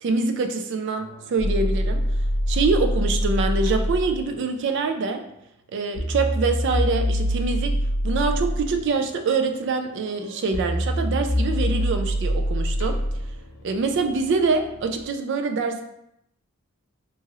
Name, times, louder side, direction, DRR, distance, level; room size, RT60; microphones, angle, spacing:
voice 1, 0.0-2.0 2.5-5.2 5.7-7.8 8.0-13.0 13.6-15.8, right 4 dB, 60° right, 6 dB, 0.3 m, -25 dB
sound 1, 1.0-4.2 6.0-15.0, equal, 70° left, 0.5 m, -25 dB
2.9 x 2.4 x 2.9 m, 0.78 s
head